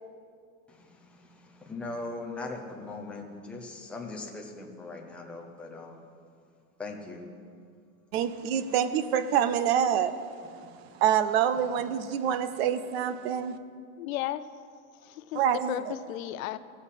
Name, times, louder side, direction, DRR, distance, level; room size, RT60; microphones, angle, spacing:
voice 1, 0.7-6.1 6.8-7.3, left 3 dB, 5° left, 0.5 m, -40 dB
voice 2, 8.1-10.2 11.0-13.6 15.3-15.9, right 9 dB, 45° right, 0.5 m, -26 dB
voice 3, 14.0-14.5 15.0-16.6, left 13 dB, 65° left, 0.6 m, -34 dB
14.5 x 5.7 x 8.1 m
supercardioid pair, 165°, 44 cm